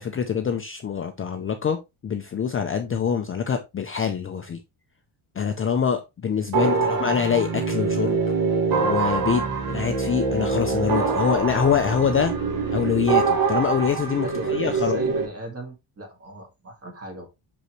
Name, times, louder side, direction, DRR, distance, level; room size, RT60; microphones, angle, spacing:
voice 1, 0.0-4.6 5.4-8.2 8.8-9.4 9.7-12.3 12.7-15.0, left 7 dB, 25° left, 0.5 m, -25 dB
sound 1, 6.5-15.3, right 4 dB, 45° right, 1.4 m, -24 dB
voice 2, 6.6-7.1 9.3-9.5 14.3-17.3, equal, 30° right, 2.0 m, -36 dB
6.4 x 5.3 x 3.1 m
cardioid pair, 170°, 49 cm